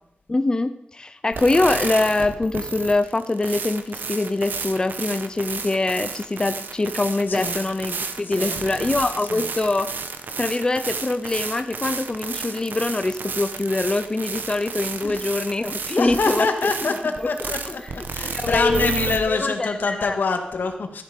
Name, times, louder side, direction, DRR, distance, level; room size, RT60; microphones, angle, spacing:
voice 1, 0.3-9.9 10.4-16.5 16.8-16.9 17.2-17.3 18.2-18.9 19.3-20.2, left 2 dB, 25° left, 9 dB, 0.5 m, -24 dB
sound 1, 1.3-19.2, right 5 dB, 75° right, 1.1 m, -31 dB
voice 2, 8.2-8.6 9.3-9.5 15.0-15.2 16.0-17.8 18.1-21.0, left 4 dB, 80° left, 5 dB, 1.9 m, -25 dB
13.5 x 10.5 x 5.2 m, 0.77 s
wide cardioid pair, 120°, 3 cm